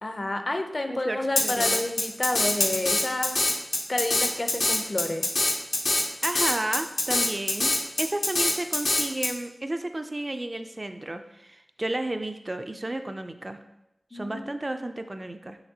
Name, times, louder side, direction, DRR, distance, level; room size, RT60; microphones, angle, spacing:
voice 1, 0.0-3.4 3.9-5.3 14.1-14.6, left 2 dB, 40° left, 6 dB, 0.4 m, -30 dB
voice 2, 0.9-1.8 6.2-13.6 14.1-15.6, right 1 dB, 35° right, 7 dB, 0.3 m, -32 dB
Drum kit, 1.4-9.3, left 2 dB, 90° left, 0.7 m, -24 dB
5.8 x 3.3 x 2.7 m, 0.87 s
wide cardioid pair, 70°, 0 cm